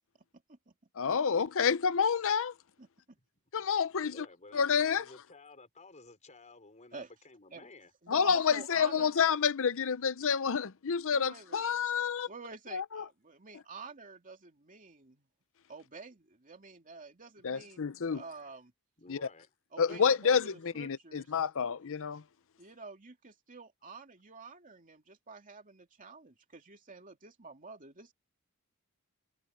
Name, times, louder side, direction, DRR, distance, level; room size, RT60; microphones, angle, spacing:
voice 1, 1.0-2.5 3.5-4.3 4.5-5.1 8.1-12.3 12.7-13.0 17.4-18.2 19.1-19.2 19.8-22.2, left 6 dB, 65° left, 0.7 m, -29 dB
voice 2, 2.8-3.2 6.9-7.1 7.5-7.7 8.0-9.1 11.1-11.6 12.3-15.3 15.7-18.7 19.7-20.4 20.7-21.3 22.6-28.1, right 4 dB, 35° right, 2.7 m, -49 dB
voice 3, 4.0-7.9 19.0-19.5 19.9-20.1, left 3 dB, 35° left, 4.7 m, -54 dB
head